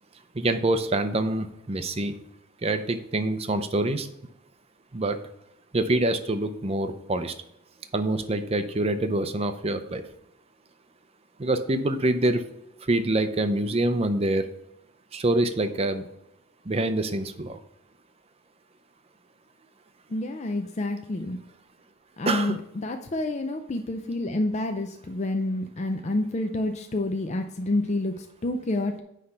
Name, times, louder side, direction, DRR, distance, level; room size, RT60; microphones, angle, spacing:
voice 1, 0.4-2.2 2.6-4.1 4.9-5.2 5.7-7.3 7.9-10.0 11.4-12.4 12.9-14.5 15.1-16.1 16.7-17.6 22.3-22.6, right 2 dB, 25° right, 9 dB, 0.5 m, -25 dB
voice 2, 20.1-21.4 22.2-29.0, left 2 dB, 30° left, 5 dB, 0.4 m, -28 dB
9.7 x 3.3 x 5.5 m, 0.79 s
head